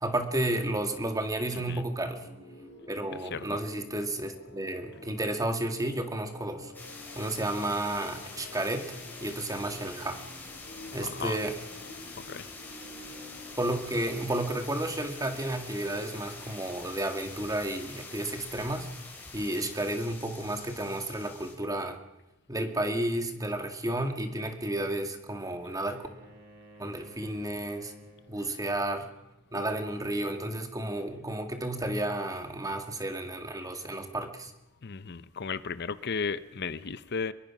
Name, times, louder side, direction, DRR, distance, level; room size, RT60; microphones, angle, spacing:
voice 1, 0.0-2.3 2.9-6.7 7.1-9.0 9.2-10.2 10.9-11.6 13.6-18.9 19.3-22.0 22.5-26.1 26.8-27.9 28.3-29.1 29.5-34.5, right 1 dB, 15° right, 6 dB, 2.0 m, -32 dB
sound 1, 2.0-16.4, left 1 dB, 70° left, 4.3 m, -50 dB
sound 2, 6.7-21.5, left 3 dB, 10° left, 5.3 m, -45 dB
voice 2, 11.0-11.4 12.3-12.4 34.8-37.3, left 5 dB, 55° left, 15 dB, 0.7 m, -34 dB
Wind instrument woodwind instrument, 24.9-28.5, right 1 dB, 60° right, 6.9 m, -54 dB
24.0 x 22.5 x 6.0 m, 0.97 s
head